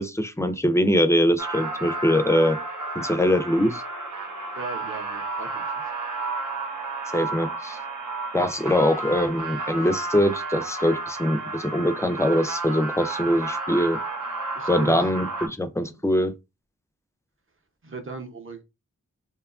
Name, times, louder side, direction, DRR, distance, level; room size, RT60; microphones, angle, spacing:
voice 1, 0.0-2.6 3.0-3.8 7.1-7.8 8.3-14.0 14.7-16.3, equal, 10° left, 0.3 m, -23 dB
sound 1, 1.4-15.5, right 3 dB, 80° right, 0.7 m, -32 dB
voice 2, 4.5-5.6 14.5-15.0 15.9-16.0 17.8-18.6, right 4 dB, 45° right, 0.7 m, -37 dB
2.9 x 2.2 x 2.4 m
wide cardioid pair, 50°, 30 cm